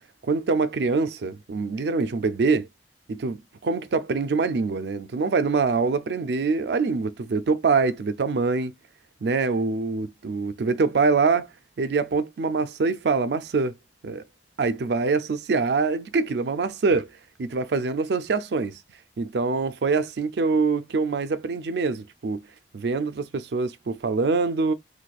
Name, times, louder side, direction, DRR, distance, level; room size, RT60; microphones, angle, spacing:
voice 1, 0.2-2.7 3.1-8.7 9.2-11.5 11.8-13.7 14.0-14.2 14.6-17.1 17.4-18.8 19.2-22.4 22.7-24.7, right 4 dB, 65° right, 0.4 m, -24 dB
4.1 x 2.6 x 2.3 m
head